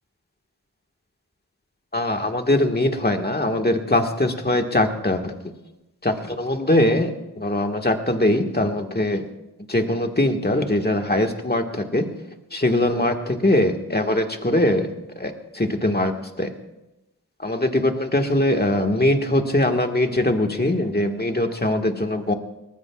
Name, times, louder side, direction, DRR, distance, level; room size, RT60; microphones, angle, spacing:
voice 1, 1.9-5.3 6.0-7.1 7.4-9.2 9.7-12.1 12.5-14.9 15.2-16.1 16.4-16.5 17.4-22.3, left 1 dB, 25° left, 3 dB, 1.6 m, -21 dB
22.5 x 19.0 x 2.4 m, 0.97 s
wide cardioid pair, 45°, 39 cm